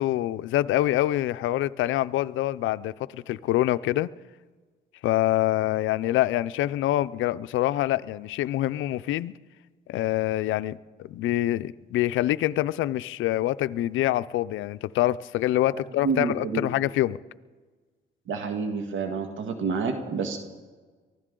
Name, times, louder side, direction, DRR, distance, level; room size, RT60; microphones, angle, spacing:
voice 1, 0.0-4.1 5.0-9.3 9.9-17.2, left 14 dB, 80° left, 15 dB, 0.5 m, -25 dB
voice 2, 16.0-16.6 18.3-20.4, right 5 dB, 80° right, 5 dB, 1.6 m, -28 dB
24.0 x 15.0 x 3.8 m, 1.4 s
cardioid pair, 90°, 20 cm